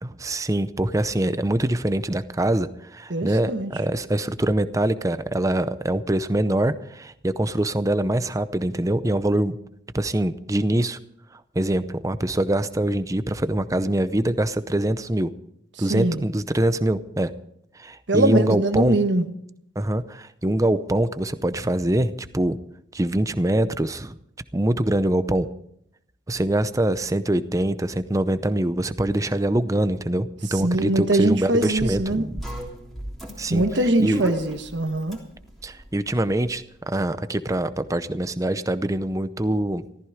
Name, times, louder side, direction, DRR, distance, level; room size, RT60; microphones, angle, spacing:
voice 1, 0.0-9.6 9.9-11.0 11.5-15.3 15.8-17.3 17.8-19.0 19.8-22.6 22.9-24.2 24.5-25.5 26.3-32.4 33.4-33.6 34.0-34.3 35.6-39.8, right 1 dB, 15° right, 12 dB, 0.6 m, -24 dB
voice 2, 3.1-3.7 15.9-16.2 18.1-19.2 30.6-32.2 33.5-35.2, right 1 dB, 65° right, 8 dB, 1.3 m, -22 dB
sound 1, 31.5-36.8, equal, ahead, 3.3 m, -38 dB
14.5 x 14.0 x 5.0 m, 0.72 s
head